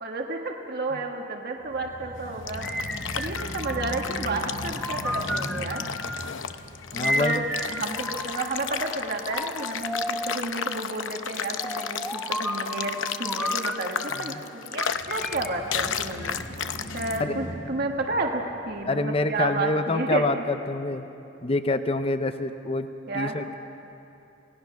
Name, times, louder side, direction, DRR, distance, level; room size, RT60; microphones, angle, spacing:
voice 1, 0.0-2.7 3.2-5.8 6.9-12.9 13.2-16.4 16.7-20.4 23.1-23.4, right 2 dB, 55° right, 2 dB, 1.5 m, -31 dB
sound 1, 1.6-9.7 10.2-10.3 14.8-19.3, equal, 60° left, 3.9 m, -40 dB
sound 2, 2.2-17.2, left 8 dB, 85° left, 0.7 m, -33 dB
sound 3, 2.6-4.2 4.8-6.4 7.0-8.6 9.3-10.5 11.6-14.4 14.8-16.6, equal, 5° left, 0.9 m, -33 dB
voice 2, 6.9-7.4 14.3-14.4 17.2-17.4 18.9-21.1 21.4-23.6, left 2 dB, 30° left, 9 dB, 0.6 m, -26 dB
28.5 x 18.0 x 5.8 m, 3.0 s
head